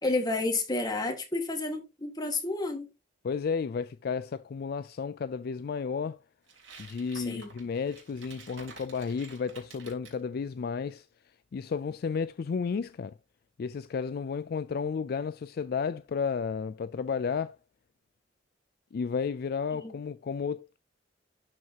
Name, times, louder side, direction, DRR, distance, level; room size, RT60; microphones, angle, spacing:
voice 1, 0.0-2.9 7.1-7.5 19.8-20.0, left 2 dB, 20° left, 1.7 m, -30 dB
voice 2, 3.2-6.2 6.8-11.1 11.5-13.1 13.6-17.6 18.9-20.8, left 5 dB, 50° left, 0.3 m, -32 dB
sound 1, 6.5-10.2, right 4 dB, 85° right, 3.1 m, -51 dB
12.0 x 4.7 x 2.8 m
head